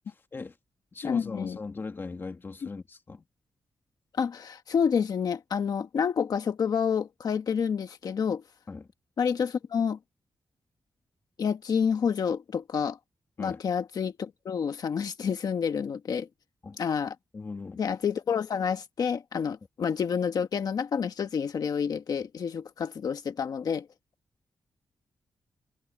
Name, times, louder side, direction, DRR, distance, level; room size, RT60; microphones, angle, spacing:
voice 1, 0.1-0.6 0.9-3.2 8.7-8.9 13.4-13.6 16.6-16.8 17.3-17.8, left 4 dB, 30° left, 1.7 m, -39 dB
voice 2, 1.0-1.6 4.2-8.4 9.2-10.0 11.4-13.0 13.4-16.3 16.8-17.1 17.8-23.9, left 7 dB, 60° left, 1.3 m, -28 dB
wide cardioid pair, 165°, 7 cm